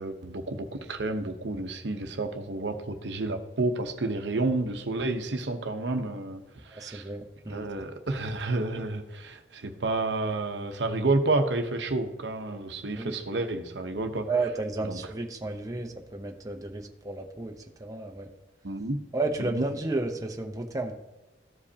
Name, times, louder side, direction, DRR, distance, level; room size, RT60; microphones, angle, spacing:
voice 1, 0.0-7.1 7.5-14.5 14.8-15.0 18.6-19.0 19.4-19.7, right 2 dB, 75° right, 6 dB, 0.9 m, -30 dB
voice 2, 6.7-7.6 13.0-13.1 14.3-17.5 17.8-18.3 19.1-20.9, right 2 dB, 20° right, 2 dB, 0.7 m, -32 dB
14.0 x 5.1 x 2.8 m, 1.1 s
head